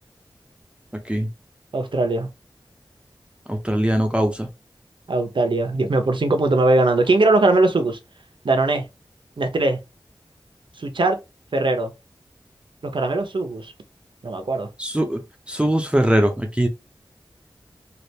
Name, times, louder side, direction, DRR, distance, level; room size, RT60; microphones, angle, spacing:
voice 1, 1.7-2.3 5.1-8.0 8.4-8.8 9.4-9.8 10.8-11.2 11.5-11.9 12.8-13.7 14.2-14.7, right 2 dB, 70° right, 0.8 m, -20 dB
voice 2, 3.5-4.5 14.8-15.2 15.5-16.7, right 1 dB, 10° right, 0.6 m, -21 dB
3.3 x 2.4 x 2.8 m
wide cardioid pair, 65°, 9 cm